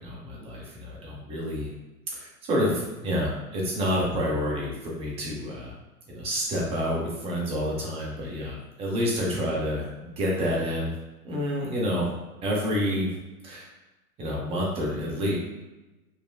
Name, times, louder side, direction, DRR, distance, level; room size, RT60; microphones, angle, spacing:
voice 1, 0.0-1.7 2.1-5.7 6.1-10.9 11.2-12.1 12.4-13.1 13.4-13.7 14.2-15.4, equal, 15° right, -4 dB, 0.7 m, -28 dB
5.6 x 2.1 x 2.3 m, 1.1 s
figure-of-eight pair, 105°, 46 cm